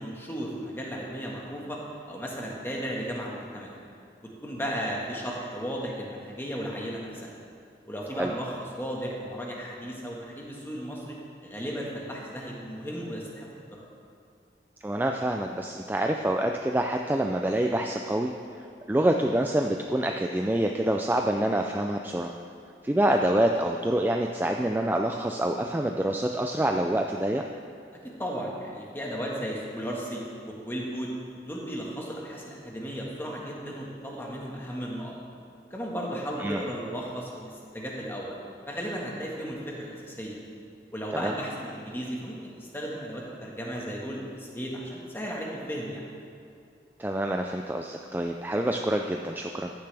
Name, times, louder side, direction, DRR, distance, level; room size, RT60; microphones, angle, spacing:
voice 1, 0.0-1.8 2.1-3.8 4.4-7.4 7.9-11.2 11.4-13.8 28.0-31.1 31.5-35.1 35.7-38.4 38.7-40.4 40.9-46.0, equal, 15° left, -3 dB, 1.5 m, -35 dB
voice 2, 14.8-22.4 22.8-27.4 36.4-36.6 41.1-41.3 47.0-49.7, right 1 dB, 10° right, 3 dB, 0.3 m, -26 dB
14.5 x 10.5 x 3.4 m, 2.4 s
head